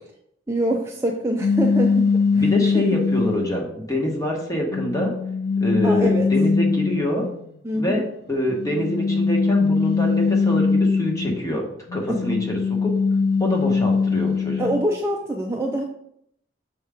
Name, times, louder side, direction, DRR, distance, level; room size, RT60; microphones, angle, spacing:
voice 1, 0.5-2.4 2.7-2.8 5.8-6.3 7.6-8.0 12.1-12.2 14.6-15.8, right 1 dB, 15° right, 0 dB, 0.4 m, -25 dB
sound 1, 1.4-3.6 4.2-7.3 8.5-11.5 11.9-14.9, left 4 dB, 55° left, 0.3 m, -21 dB
voice 2, 2.3-5.1 5.6-7.3 7.7-11.6 11.9-12.9 13.4-14.7, equal, 15° left, 0 dB, 1.2 m, -25 dB
6.4 x 4.7 x 3.5 m, 0.72 s
head